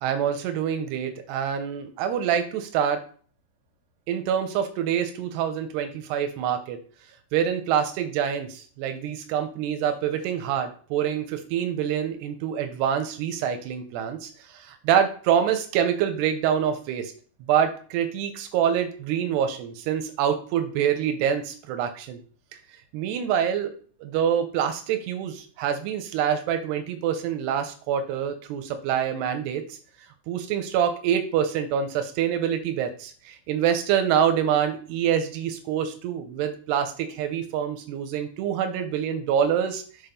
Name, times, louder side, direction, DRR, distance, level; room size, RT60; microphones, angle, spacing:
voice 1, 0.0-3.0 4.1-6.8 7.3-17.1 17.5-22.2 22.5-22.6 22.9-23.7 24.0-29.8 30.3-39.8, right 9 dB, 80° right, 7 dB, 2.5 m, -26 dB
7.8 x 4.3 x 5.3 m, 0.42 s
omnidirectional pair, 5.7 m